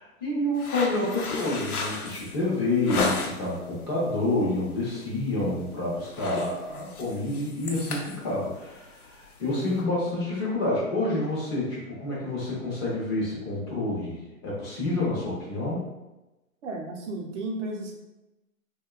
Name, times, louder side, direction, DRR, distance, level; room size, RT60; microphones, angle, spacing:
voice 1, 0.0-15.8, left 2 dB, 20° left, -7 dB, 0.5 m, -28 dB
sound 1, 0.5-3.6 4.0-4.4 4.7-4.9 5.2-5.6 5.9-9.8, left 4 dB, 90° left, 0.6 m, -33 dB
voice 2, 16.6-17.9, right 2 dB, 55° right, 1 dB, 0.6 m, -34 dB
2.6 x 2.2 x 2.3 m, 1.0 s
hypercardioid pair, 140°, 43 cm